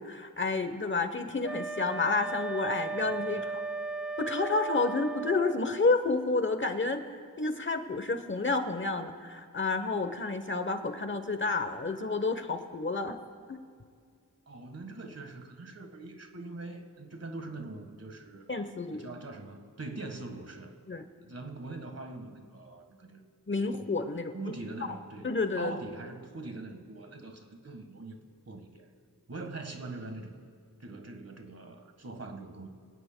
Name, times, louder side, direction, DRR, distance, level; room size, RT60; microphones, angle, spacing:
voice 1, 0.0-3.6 4.2-7.0 7.4-13.2 13.5-13.6 18.5-19.1 20.9-21.0 23.5-24.3 25.2-25.7, left 3 dB, 35° left, 8 dB, 0.9 m, -30 dB
Wind instrument woodwind instrument, 1.4-5.7, right 4 dB, ahead, 0.7 m, -36 dB
voice 2, 3.3-3.6 14.5-18.5 18.9-20.8 21.2-23.2 24.3-25.3 25.6-28.2 28.5-28.9 29.3-30.4 30.8-32.7, right 2 dB, 45° right, 6 dB, 1.5 m, -42 dB
25.0 x 17.0 x 2.2 m, 2.2 s
wide cardioid pair, 85°, 35 cm